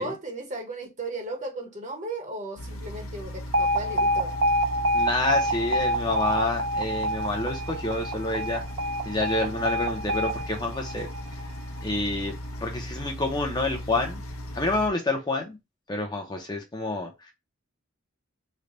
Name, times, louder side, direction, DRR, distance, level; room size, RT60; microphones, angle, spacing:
voice 1, 0.0-4.3, right 2 dB, 35° right, 1.0 m, -35 dB
sound 1, 2.6-14.9, left 1 dB, 85° left, 0.7 m, -37 dB
Alarm, 3.5-11.6, equal, 75° right, 0.5 m, -27 dB
voice 2, 4.9-8.6 9.0-11.1 11.8-14.2 14.5-15.6 15.9-17.3, left 2 dB, 20° left, 0.6 m, -28 dB
3.3 x 2.2 x 3.8 m
head